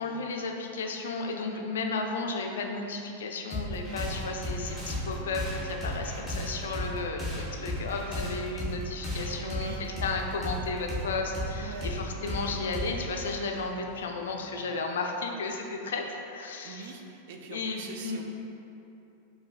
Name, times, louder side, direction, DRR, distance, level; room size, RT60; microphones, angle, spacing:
voice 1, 0.0-16.9 17.5-18.2, left 3 dB, 60° left, 2 dB, 0.3 m, -34 dB
sound 1, 3.5-14.6, equal, 5° right, 1.0 m, -35 dB
voice 2, 9.4-9.8 11.5-12.1 16.6-18.2, right 5 dB, 50° right, 3 dB, 0.3 m, -43 dB
4.8 x 2.6 x 2.4 m, 2.9 s
figure-of-eight pair, 90°, 0 cm